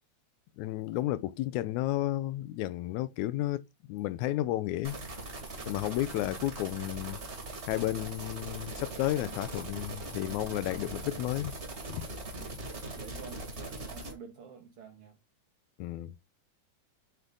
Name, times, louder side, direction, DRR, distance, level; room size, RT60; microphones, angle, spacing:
voice 1, 0.6-3.6 3.9-5.0 5.7-7.2 7.7-11.5 11.9-12.1 15.8-16.1, left 15 dB, 80° left, 1.8 m, -32 dB
sound 1, 4.8-14.1, right 2 dB, 30° right, 1.3 m, -41 dB
voice 2, 12.3-15.2, right 6 dB, 65° right, 1.5 m, -50 dB
8.0 x 3.8 x 3.6 m
omnidirectional pair, 3.6 m